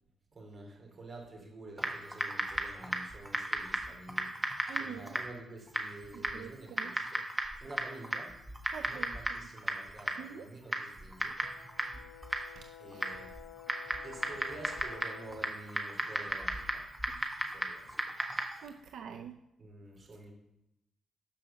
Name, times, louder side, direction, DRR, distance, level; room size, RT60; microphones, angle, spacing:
voice 1, 0.3-4.3 4.8-7.2 7.6-8.4 8.8-11.4 12.6-13.3 14.0-16.9 17.4-18.0 19.6-20.3, right 2 dB, 35° right, 3.0 m, -49 dB
Typing, 1.8-18.7, right 1 dB, 10° right, 1.4 m, -37 dB
voice 2, 4.7-5.2 6.1-6.9 8.7-9.2 10.2-10.5 12.9-13.1 18.6-19.4, right 8 dB, 75° right, 0.5 m, -45 dB
Brass instrument, 11.4-15.6, left 10 dB, 65° left, 0.9 m, -51 dB
12.5 x 5.1 x 6.9 m
cardioid pair, 140°, 0 cm